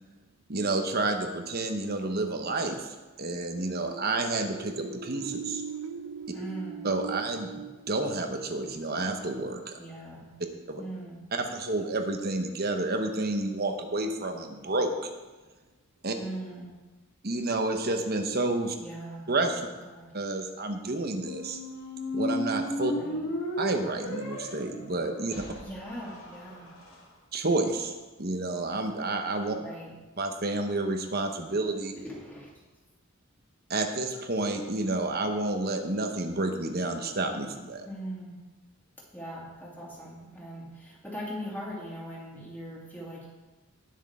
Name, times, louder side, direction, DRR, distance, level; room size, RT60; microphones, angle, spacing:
voice 1, 0.5-5.6 6.8-9.8 10.7-10.8 11.3-14.9 16.0-16.1 17.2-18.8 19.3-19.6 20.1-21.6 22.1-22.9 23.6-25.3 27.3-27.9 28.2-29.6 30.2-31.9 33.7-37.9, right 2 dB, 45° right, 5 dB, 1.1 m, -30 dB
sound 1, 3.5-9.2, right 6 dB, 90° right, 0.5 m, -41 dB
voice 2, 6.3-6.9 9.8-10.3 10.8-11.2 16.1-16.7 18.8-19.2 19.7-20.1 22.9-23.2 25.6-26.7 29.5-29.9 31.9-32.5 37.9-38.4 39.1-43.3, right 1 dB, 10° left, -5 dB, 2.7 m, -40 dB
sound 2, 21.0-26.9, equal, 80° left, 4.0 m, -34 dB
18.5 x 6.4 x 3.7 m, 1.2 s
head